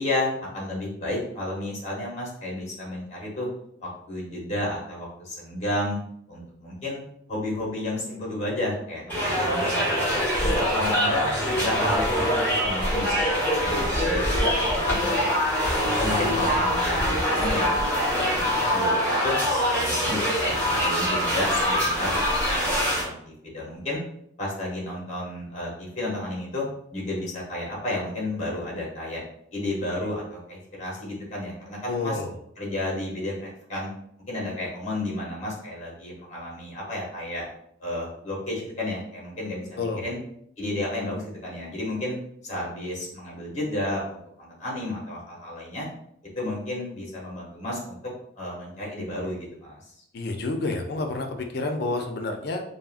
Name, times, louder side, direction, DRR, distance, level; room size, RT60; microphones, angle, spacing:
voice 1, 0.0-3.5 3.8-6.0 6.3-7.0 7.3-11.3 11.6-13.5 13.8-14.8 15.5-19.3 19.7-22.2 22.5-24.0 24.4-26.6 26.9-29.2 29.5-32.2 32.6-33.9 34.3-37.5 37.8-40.2 40.6-42.2 42.4-45.9 46.4-48.0 48.4-49.8, left 1 dB, 35° left, -4 dB, 0.8 m, -32 dB
sound 1, 9.1-23.0, equal, 10° left, 1.0 m, -24 dB
voice 2, 10.4-11.0 14.4-14.5 31.9-32.3 39.8-40.0 50.1-52.6, left 3 dB, 50° left, 4 dB, 0.4 m, -29 dB
3.5 x 2.0 x 2.4 m, 0.72 s
head